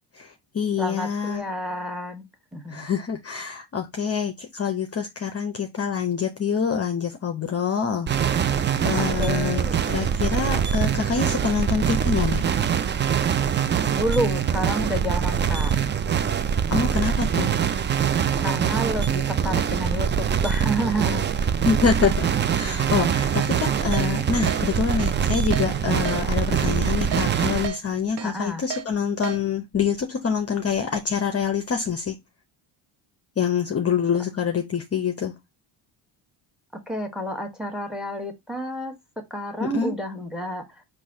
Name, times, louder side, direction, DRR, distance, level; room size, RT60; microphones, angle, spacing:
voice 1, 0.1-1.4 2.7-8.6 8.8-9.6 9.9-12.4 16.7-17.5 21.6-22.3 22.5-32.2 33.4-35.3 39.6-39.9, left 6 dB, 30° left, 0.7 m, -26 dB
voice 2, 0.8-2.2 2.5-2.9 9.0-9.7 13.9-15.7 18.4-21.3 28.2-28.6 36.7-38.9 39.3-40.6, equal, ahead, 1.2 m, -29 dB
sound 1, 8.1-27.7, right 8 dB, 25° right, 0.3 m, -23 dB
Keyboard (musical), 23.4-23.5 23.9-24.1 24.5-24.6 25.0-25.1 25.5-25.7 26.1-26.2 26.6-26.7 27.1-27.3 27.6-27.8 28.2-28.3 28.7-28.8 29.2-29.4, right 8 dB, 55° right, 0.7 m, -32 dB
4.0 x 2.7 x 4.8 m
supercardioid pair, 80°, 49 cm